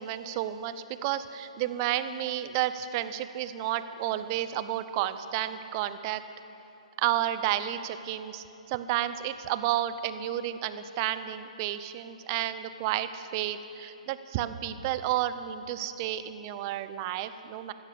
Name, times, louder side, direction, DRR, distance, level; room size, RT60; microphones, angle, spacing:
voice 1, 0.0-6.2 7.0-17.7, right 12 dB, 35° right, 12 dB, 0.7 m, -31 dB
15.5 x 14.5 x 6.6 m, 2.9 s
figure-of-eight pair, 125°, 4 cm